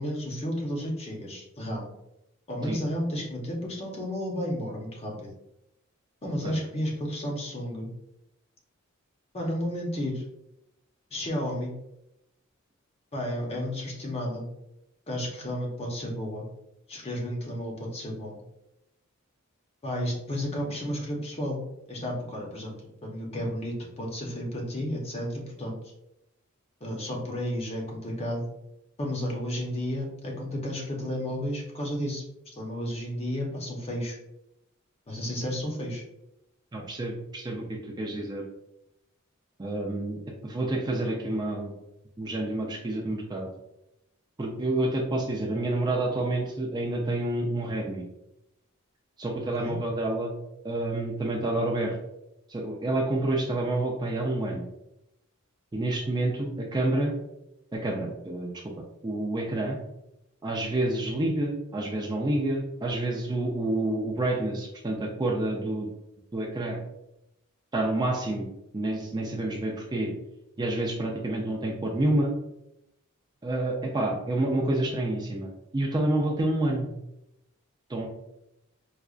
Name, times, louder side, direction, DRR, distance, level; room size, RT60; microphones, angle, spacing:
voice 1, 0.0-1.9 2.5-5.3 6.2-7.9 9.3-10.2 11.1-11.7 13.1-14.4 15.1-16.4 16.9-18.4 19.8-21.6 21.9-22.7 23.0-25.9 26.8-28.5 29.0-32.2 32.6-34.2 35.1-36.0 49.6-49.7, equal, 30° left, -1 dB, 0.7 m, -32 dB
voice 2, 36.7-38.4 39.6-41.7 42.2-43.5 44.4-48.0 49.2-50.3 50.6-51.9 52.5-54.7 55.7-57.1 57.7-58.5 59.0-59.8 60.4-65.9 66.3-66.8 67.7-68.5 68.7-70.1 70.6-72.3 73.4-75.5 75.7-76.9 77.9-78.1, right 1 dB, 20° right, -1 dB, 0.4 m, -28 dB
4.8 x 2.3 x 2.4 m, 0.85 s
head